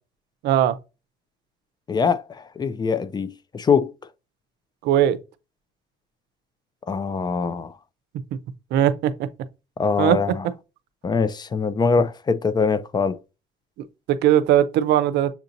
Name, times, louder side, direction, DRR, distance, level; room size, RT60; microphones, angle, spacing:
voice 1, 0.4-0.7 4.8-5.2 8.7-9.3 10.0-10.5 13.8-15.3, right 11 dB, 80° right, 0.5 m, -20 dB
voice 2, 1.9-2.2 2.6-3.9 6.9-7.7 9.8-10.5 11.0-13.2, left 5 dB, 25° left, 0.4 m, -22 dB
7.0 x 2.7 x 2.6 m
cardioid pair, 110°, 17 cm